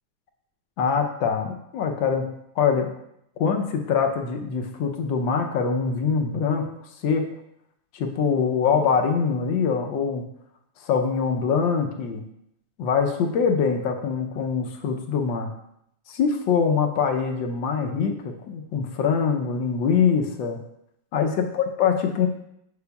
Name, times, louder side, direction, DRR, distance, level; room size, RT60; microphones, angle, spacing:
voice 1, 0.8-2.9 3.4-6.7 7.0-7.2 7.9-10.2 10.8-12.2 12.8-15.5 16.1-20.6 21.1-22.3, left 6 dB, 70° left, 4 dB, 1.4 m, -23 dB
7.2 x 6.9 x 2.3 m, 0.77 s
omnidirectional pair, 2.2 m